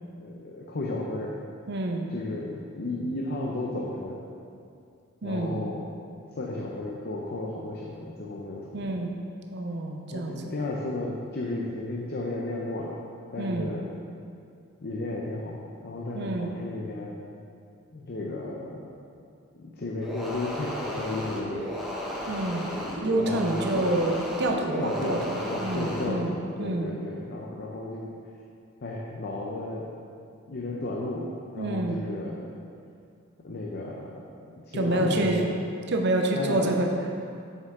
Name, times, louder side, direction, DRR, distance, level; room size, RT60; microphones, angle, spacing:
voice 1, 0.2-1.3 2.1-4.2 5.2-5.8 6.4-8.9 10.1-12.9 13.3-13.9 14.8-17.2 17.9-19.0 19.6-21.9 23.2-23.9 24.8-28.1 28.8-29.8 30.5-32.5 33.4-34.2 34.5-35.5 36.3-36.8, left 2 dB, 50° left, -3 dB, 0.6 m, -33 dB
voice 2, 1.7-2.1 5.2-5.6 8.7-9.1 9.5-10.5 13.4-13.7 16.1-16.5 22.3-22.7 23.0-26.9 31.6-32.0 34.7-35.5 35.9-36.9, right 2 dB, 55° right, 2 dB, 0.6 m, -28 dB
sound 1, 20.0-26.1, left 1 dB, ahead, 0.8 m, -34 dB
7.4 x 5.4 x 3.6 m, 2.4 s
head